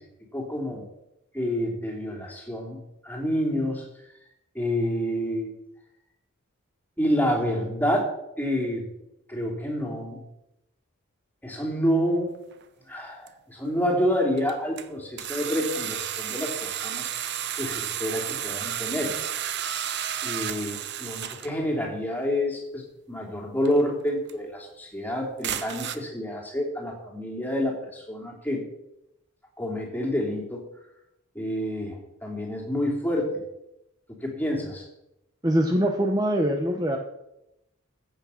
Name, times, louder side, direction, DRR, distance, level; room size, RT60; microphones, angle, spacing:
voice 1, 0.3-0.8 1.3-3.8 4.5-5.5 7.0-8.9 9.3-10.2 11.4-12.3 12.9-17.1 17.6-19.1 20.2-22.8 23.1-28.7 29.6-30.6 31.3-33.3 34.2-34.8, equal, 10° left, 0 dB, 3.2 m, -28 dB
sound 1, 12.5-12.6 13.3-13.4 14.4-14.9 15.2-21.5 23.6-23.8 24.3-24.4 25.4-26.0, right 10 dB, 55° right, 0.8 m, -32 dB
voice 2, 35.4-37.0, right 1 dB, 20° right, 3 dB, 1.0 m, -23 dB
15.0 x 8.7 x 5.8 m, 0.86 s
head